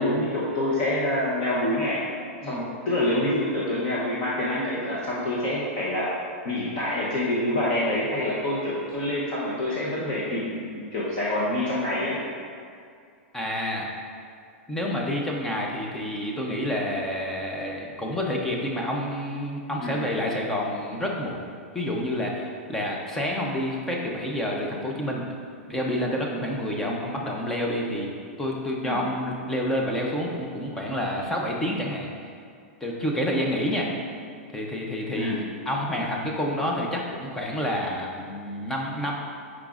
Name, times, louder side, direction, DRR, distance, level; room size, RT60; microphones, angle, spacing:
voice 1, 0.0-2.0 2.5-6.1 6.4-12.2 19.8-20.0 28.8-29.0 35.1-35.4, left 1 dB, 30° left, -7 dB, 0.7 m, -26 dB
voice 2, 13.3-13.9 14.7-21.5 21.7-25.2 25.7-28.1 28.4-32.1 32.8-33.9 34.5-39.1, left 1 dB, 5° left, -1 dB, 0.4 m, -28 dB
8.8 x 4.8 x 2.4 m, 2.3 s
supercardioid pair, 175°, 7 cm